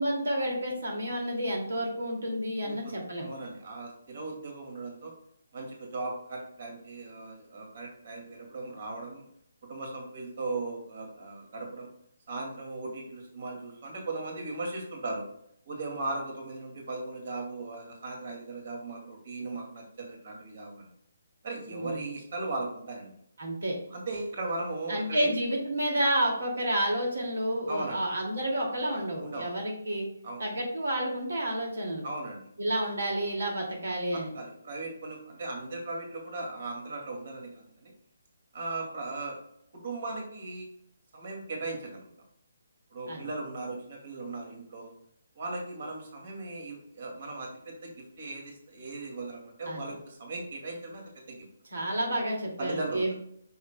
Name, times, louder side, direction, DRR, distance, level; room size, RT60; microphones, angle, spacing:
voice 1, 0.0-3.3 21.7-22.1 23.4-23.8 24.9-30.1 30.4-32.0 32.6-34.3 43.1-43.2 49.7-49.8 51.7-53.1, right 1 dB, 85° right, 0 dB, 2.4 m, -30 dB
voice 2, 2.6-5.1 5.5-9.2 9.7-11.9 12.3-15.3 15.7-20.9 21.4-23.1 23.9-25.3 27.7-28.0 29.2-29.5 30.2-30.4 32.0-32.5 34.1-37.9 38.5-39.4 39.8-40.7 41.1-42.1 42.9-44.9 45.4-51.5 52.6-53.1, right 2 dB, 50° right, 0 dB, 2.3 m, -38 dB
9.1 x 6.3 x 2.2 m, 0.70 s
hypercardioid pair, 165°, 0 cm